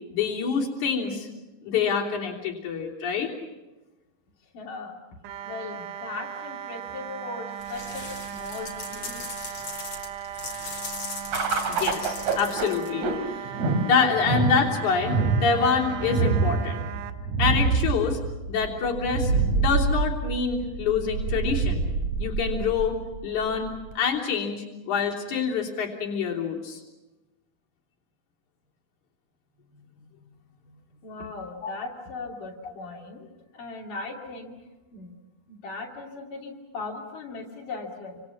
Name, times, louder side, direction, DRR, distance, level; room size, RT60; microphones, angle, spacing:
voice 1, 0.1-1.3 1.6-3.3 11.7-13.5 13.8-16.8 17.4-18.2 18.5-21.9 22.2-23.0 23.2-26.8 31.6-31.7, left 6 dB, 70° left, -2 dB, 4.8 m, -26 dB
voice 2, 4.4-5.0 5.4-8.0 8.3-9.3 31.0-33.3 33.5-34.6 34.9-35.1 35.5-38.2, left 3 dB, 85° left, -3 dB, 4.5 m, -38 dB
sound 1, 5.2-17.1, right 10 dB, 85° right, 2.6 m, -37 dB
sound 2, 7.6-13.2, left 4 dB, 55° left, 4.0 m, -39 dB
sound 3, 11.3-23.9, right 4 dB, 65° right, 4.0 m, -27 dB
29.5 x 26.5 x 5.9 m, 1.1 s
omnidirectional pair, 3.6 m